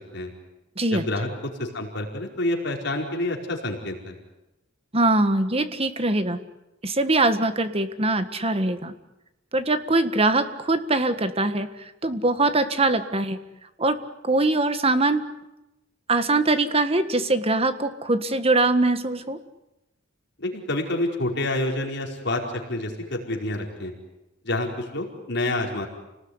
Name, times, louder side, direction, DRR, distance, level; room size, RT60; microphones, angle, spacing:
voice 1, 0.9-4.1 20.4-23.9 24.4-25.9, left 1 dB, 60° left, 1 dB, 4.9 m, -28 dB
voice 2, 4.9-6.4 6.8-8.9 9.5-13.4 13.8-14.0 14.2-15.2 16.1-19.4, right 2 dB, 30° right, 10 dB, 1.6 m, -22 dB
30.0 x 19.5 x 9.7 m, 0.97 s
head